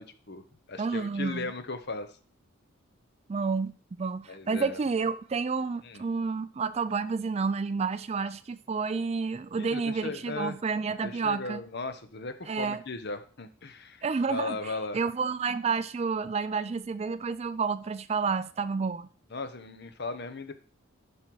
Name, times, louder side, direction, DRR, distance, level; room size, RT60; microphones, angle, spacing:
voice 1, 0.0-2.1 4.3-4.8 5.8-6.0 9.6-10.6 11.0-15.0 19.3-20.5, left 3 dB, 50° left, 0.9 m, -37 dB
voice 2, 0.8-1.5 3.3-11.6 12.5-12.8 14.0-19.1, right 5 dB, 30° right, 0.3 m, -30 dB
11.5 x 5.4 x 4.7 m
head